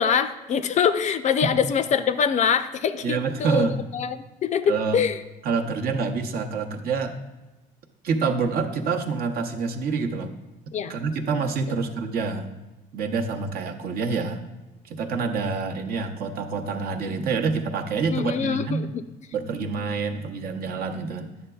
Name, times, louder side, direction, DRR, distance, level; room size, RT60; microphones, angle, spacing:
voice 1, 0.0-5.2 10.7-10.9 18.1-19.0, left 7 dB, 45° left, 11 dB, 0.4 m, -24 dB
voice 2, 3.0-3.8 4.7-5.0 5.4-7.1 8.0-10.3 10.9-12.6 12.9-14.4 14.8-18.8 19.3-21.3, right 4 dB, 60° right, 4 dB, 0.8 m, -27 dB
10.0 x 6.7 x 2.3 m, 1.1 s
cardioid pair, 110°, 17 cm